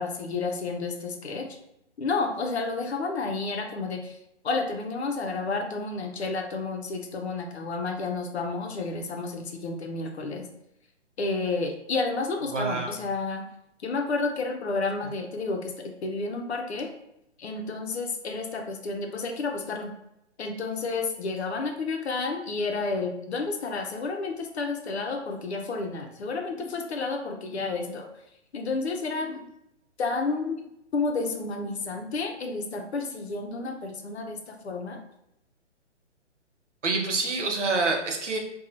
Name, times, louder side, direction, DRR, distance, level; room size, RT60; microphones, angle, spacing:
voice 1, 0.0-1.5 2.0-4.2 4.4-10.5 11.2-13.5 13.8-16.9 17.4-19.9 20.4-28.1 28.5-29.5 30.0-30.6 30.9-35.0, left 3 dB, 65° left, 3 dB, 0.6 m, -31 dB
voice 2, 12.5-12.9 36.8-38.4, right 3 dB, 85° right, 2 dB, 0.7 m, -26 dB
2.9 x 2.3 x 2.5 m, 0.82 s
figure-of-eight pair, 130°, 36 cm